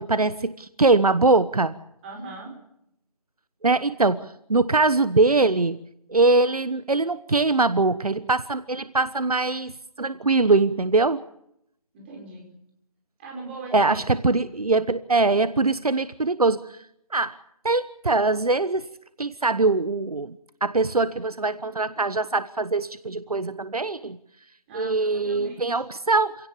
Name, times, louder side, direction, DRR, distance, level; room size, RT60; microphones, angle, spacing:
voice 1, 0.0-1.8 3.6-4.2 4.5-5.8 6.1-9.7 10.0-11.2 13.7-16.6 17.1-17.4 17.6-18.8 19.2-20.4 20.6-24.2 24.7-26.4, right 3 dB, 70° right, 14 dB, 1.2 m, -22 dB
voice 2, 2.0-2.5 11.9-12.5 13.2-14.1 24.7-25.8, right 3 dB, 20° right, 1 dB, 4.9 m, -39 dB
27.0 x 17.5 x 7.2 m, 0.76 s
figure-of-eight pair, 160°, 20 cm